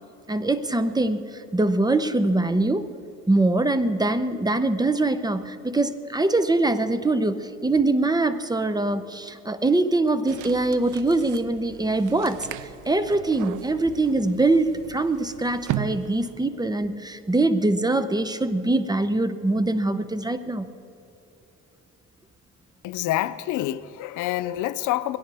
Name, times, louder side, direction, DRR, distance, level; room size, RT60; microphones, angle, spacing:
voice 1, 0.3-2.9 3.3-12.5 12.9-20.7, right 2 dB, 15° right, 0.7 m, -23 dB
sound 1, 10.3-16.5, right 12 dB, 90° right, 0.5 m, -37 dB
voice 2, 22.8-25.2, left 14 dB, 90° left, 0.6 m, -27 dB
21.0 x 17.0 x 3.5 m
cardioid pair, 90°, 30 cm